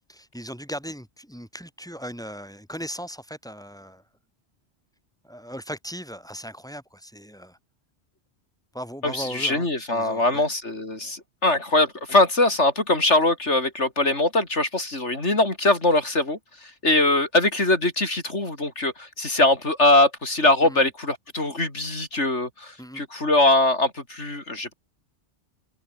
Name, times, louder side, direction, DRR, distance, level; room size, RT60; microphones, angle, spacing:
voice 1, 0.1-4.0 5.2-7.6 8.7-10.5 20.6-20.9 22.8-23.0, equal, 5° left, 6.8 m, -38 dB
voice 2, 9.0-16.4 16.8-24.7, left 2 dB, 90° left, 5.3 m, -22 dB
omnidirectional pair, 1.2 m